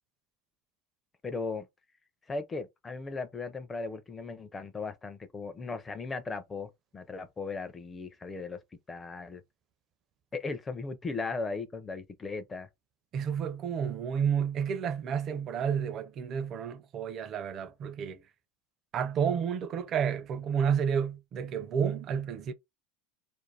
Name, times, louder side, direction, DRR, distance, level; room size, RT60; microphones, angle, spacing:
voice 1, 1.2-1.7 2.3-8.6 8.9-9.4 10.3-12.7, left 4 dB, 20° left, 0.5 m, -37 dB
voice 2, 13.1-18.2 18.9-22.5, right 7 dB, 40° right, 0.5 m, -30 dB
2.5 x 2.1 x 3.1 m
supercardioid pair, 115°, 0 cm